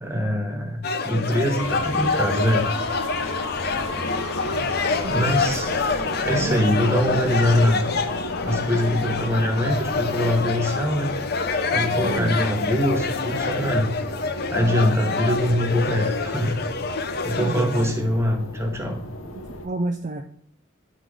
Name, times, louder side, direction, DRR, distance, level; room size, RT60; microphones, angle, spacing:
voice 1, 0.0-2.7 5.1-5.8 6.2-7.8 8.4-11.1 11.7-13.9 14.5-16.6 17.2-19.0, equal, 15° right, 2 dB, 1.1 m, -23 dB
sound 1, 0.8-17.9, left 4 dB, 50° left, 0.6 m, -27 dB
sound 2, 1.6-19.7, left 2 dB, 85° left, 0.9 m, -34 dB
voice 2, 5.0-5.5 6.4-7.2 12.0-12.3 17.4-17.9 19.4-20.2, right 2 dB, 35° right, 4 dB, 0.4 m, -30 dB
9.4 x 3.8 x 4.8 m, 0.64 s
head